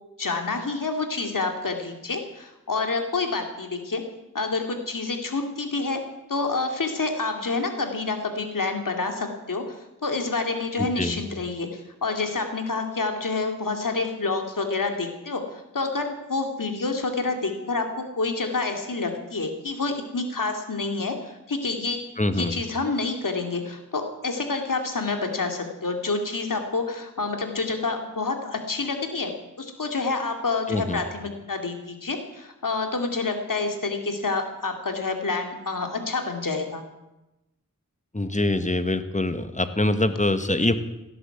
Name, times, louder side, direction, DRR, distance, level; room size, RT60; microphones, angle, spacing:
voice 1, 0.2-4.0 4.3-6.0 6.3-17.9 18.2-22.0 22.4-29.3 29.6-36.8, left 3 dB, 75° left, 4 dB, 2.5 m, -28 dB
voice 2, 10.8-11.2 22.2-22.6 30.7-31.0 38.1-40.8, left 1 dB, 20° left, 10 dB, 1.5 m, -24 dB
17.0 x 11.0 x 7.9 m, 0.97 s
cardioid pair, 40°, 33 cm